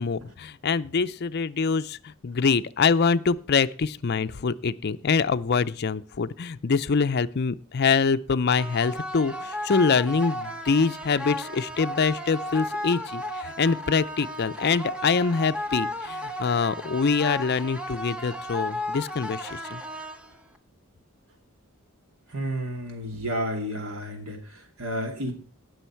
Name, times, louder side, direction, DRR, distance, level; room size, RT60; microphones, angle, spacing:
voice 1, 0.0-19.8, left 5 dB, 50° left, 12 dB, 0.5 m, -25 dB
sound 1, 8.6-20.6, left 1 dB, 5° right, 1.0 m, -34 dB
voice 2, 22.3-25.3, equal, 80° right, 4 dB, 2.5 m, -31 dB
18.5 x 6.3 x 4.5 m, 0.42 s
head